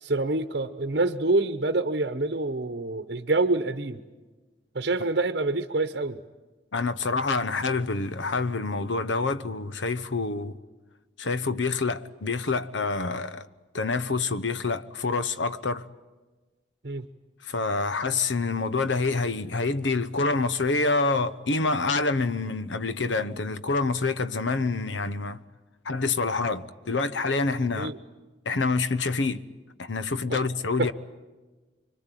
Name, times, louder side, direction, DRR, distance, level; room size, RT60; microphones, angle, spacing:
voice 1, 0.0-4.0 4.7-6.2 16.8-17.1 27.8-28.0 30.3-30.4 30.8-30.9, right 2 dB, 55° right, 1.0 m, -26 dB
voice 2, 6.7-10.6 11.2-13.5 13.7-15.9 17.4-25.4 25.8-27.9 28.4-29.4 29.8-30.9, left 3 dB, 85° left, 1.0 m, -27 dB
26.0 x 24.0 x 9.1 m
head